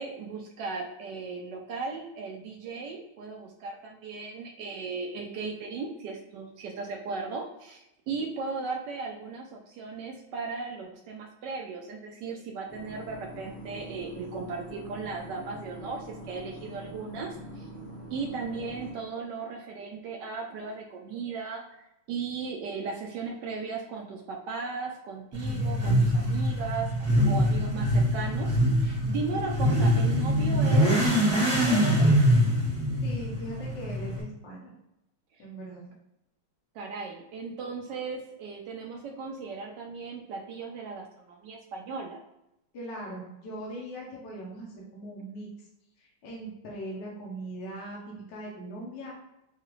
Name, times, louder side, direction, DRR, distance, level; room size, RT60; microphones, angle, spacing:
voice 1, 0.0-17.7 18.1-26.9 27.2-32.1 35.3-35.4 36.7-42.2, right 4 dB, 80° right, 2 dB, 0.9 m, -37 dB
sound 1, 12.7-18.9, equal, 30° left, 1.6 m, -44 dB
Motorcycle / Accelerating revving vroom, 25.3-34.2, equal, 25° right, 0.3 m, -24 dB
voice 2, 33.0-34.7 35.4-35.9 42.7-45.5 46.0-49.2, right 1 dB, 65° left, -3 dB, 1.4 m, -40 dB
4.7 x 2.4 x 3.0 m, 0.87 s
omnidirectional pair, 2.3 m